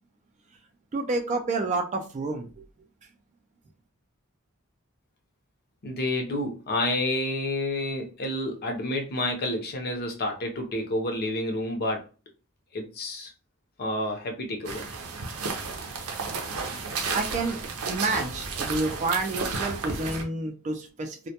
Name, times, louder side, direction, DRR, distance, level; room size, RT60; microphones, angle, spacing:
voice 1, 0.9-2.6 17.1-17.6 17.9-21.3, right 3 dB, 35° right, 4 dB, 0.4 m, -29 dB
voice 2, 5.8-12.0 12.7-13.3 13.8-14.9, left 1 dB, 45° left, 3 dB, 0.6 m, -29 dB
sound 1, 14.6-20.2, right 4 dB, 85° right, 0.5 m, -32 dB
2.1 x 2.1 x 2.8 m, 0.33 s
head